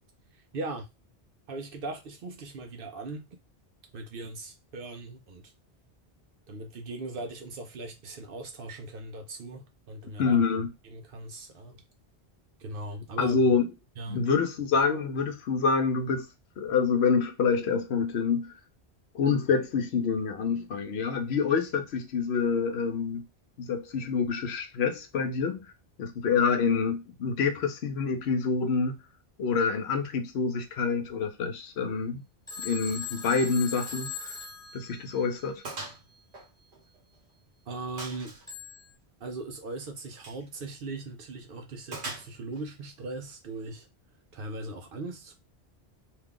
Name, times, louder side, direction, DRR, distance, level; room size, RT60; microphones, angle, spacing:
voice 1, 0.3-0.9 1.5-3.2 3.9-5.5 6.5-10.4 10.8-11.8 12.6-13.4 14.0-14.3 37.7-38.3 39.2-43.9 44.3-45.3, right 2 dB, 60° right, 0.8 m, -39 dB
voice 2, 10.2-10.7 13.2-13.7 14.1-16.3 16.6-18.5 19.1-23.2 23.6-25.7 26.0-29.0 29.4-32.2 32.6-34.3 34.7-35.6, left 5 dB, 80° left, 0.9 m, -27 dB
Telephone, 32.5-35.5 38.5-38.9, left 5 dB, 5° left, 0.8 m, -39 dB
Gunshot gunfire, 33.8-34.1 34.4-34.5 35.0-35.1 35.6-36.0 36.3-37.3 38.0-38.5 40.1-40.4 41.9-42.6, right 2 dB, 85° right, 1.3 m, -41 dB
2.8 x 2.3 x 3.6 m
omnidirectional pair, 1.1 m